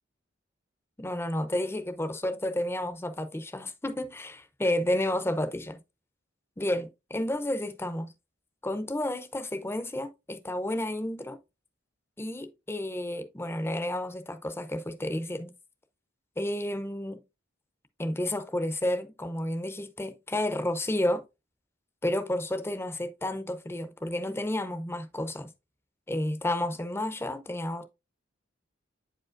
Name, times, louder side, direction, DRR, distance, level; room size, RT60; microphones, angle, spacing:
voice 1, 1.0-5.8 6.6-8.1 8.6-11.4 12.2-15.5 16.4-17.2 18.0-21.2 22.0-25.5 26.1-27.8, left 1 dB, 10° left, 0.6 m, -31 dB
8.1 x 5.0 x 2.5 m
head